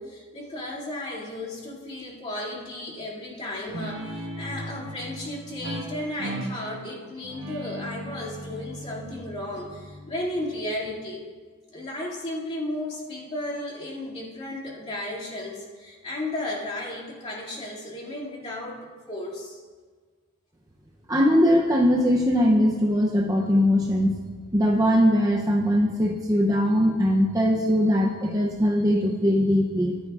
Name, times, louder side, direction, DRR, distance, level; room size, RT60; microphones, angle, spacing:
voice 1, 0.0-11.2 11.7-19.6, left 1 dB, 30° left, -5 dB, 2.3 m, -34 dB
Guitar, 3.7-10.9, right 1 dB, 60° right, 1.1 m, -37 dB
voice 2, 21.1-24.2 24.5-30.0, equal, 15° right, -1 dB, 0.6 m, -21 dB
13.5 x 11.0 x 2.4 m, 1.5 s
head